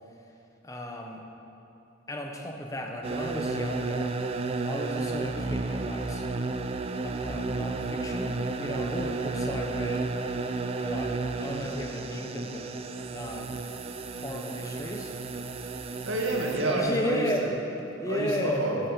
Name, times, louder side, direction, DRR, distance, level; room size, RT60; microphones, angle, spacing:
voice 1, 0.6-1.2 2.1-4.1 4.6-6.3 7.0-10.1 10.8-12.7 13.1-13.6 14.1-15.1 16.7-18.6, equal, 15° left, 2 dB, 0.8 m, -34 dB
sound 1, 3.0-16.8, right 3 dB, 30° right, 0.3 m, -32 dB
voice 2, 16.0-17.5 18.1-18.9, right 2 dB, 80° right, -2 dB, 1.7 m, -29 dB
10.5 x 7.5 x 5.2 m, 2.9 s
head